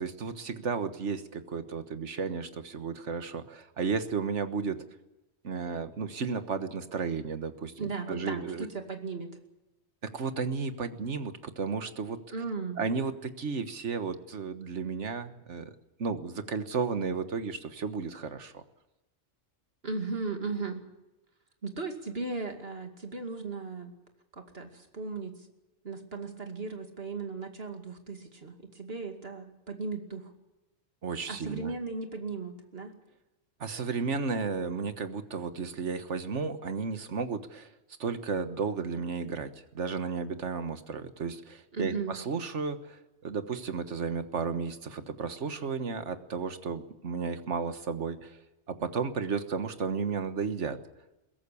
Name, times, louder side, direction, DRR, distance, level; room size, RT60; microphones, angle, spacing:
voice 1, 0.0-4.8 5.4-8.7 10.0-12.2 12.8-15.7 16.0-18.6 31.0-31.7 33.6-37.7 38.0-48.4 48.7-50.8, right 5 dB, 90° right, 10 dB, 1.7 m, -33 dB
voice 2, 7.8-9.3 12.3-12.8 19.8-20.8 21.6-24.0 24.4-25.4 25.8-30.3 31.3-32.9 41.7-42.2, right 4 dB, 60° right, 5 dB, 2.6 m, -36 dB
22.0 x 17.0 x 8.4 m, 1.0 s
omnidirectional pair, 1.2 m